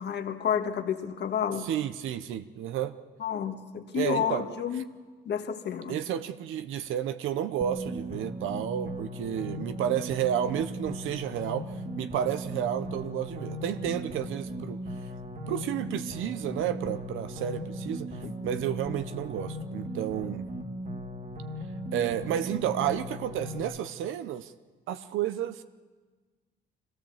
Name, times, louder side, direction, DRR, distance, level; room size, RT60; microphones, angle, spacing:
voice 1, 0.0-1.7 3.2-4.9 5.2-6.0 18.2-18.5, left 8 dB, 60° left, 6 dB, 1.7 m, -30 dB
voice 2, 1.6-2.9 3.9-4.5 5.9-14.8 15.5-18.1 18.4-20.4 21.9-24.5 24.9-25.6, right 10 dB, 85° right, 11 dB, 0.7 m, -31 dB
sound 1, 7.6-23.6, equal, 40° right, 2.6 m, -38 dB
24.0 x 17.0 x 7.1 m, 1.4 s
cardioid pair, 90°, 20 cm